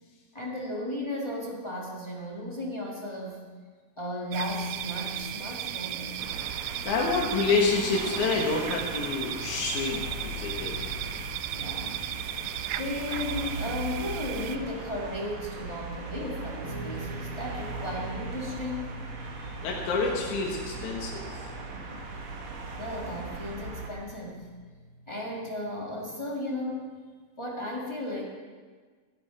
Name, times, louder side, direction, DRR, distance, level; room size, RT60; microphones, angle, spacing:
voice 1, 0.3-3.4 4.0-6.2 10.3-10.6 11.5-12.0 12.8-18.9 22.8-24.5 25.1-27.0 27.4-28.2, left 1 dB, 30° left, -3 dB, 0.5 m, -35 dB
sound 1, 4.3-14.6, right 11 dB, 85° right, 2.0 m, -35 dB
sound 2, 6.2-23.9, right 2 dB, 50° right, 2.0 m, -39 dB
voice 2, 6.9-10.8 19.6-21.2, left 4 dB, 75° left, -1 dB, 2.7 m, -28 dB
Guitar, 16.6-25.9, right 2 dB, 70° right, 3.2 m, -44 dB
14.0 x 10.0 x 5.0 m, 1.5 s
omnidirectional pair, 3.5 m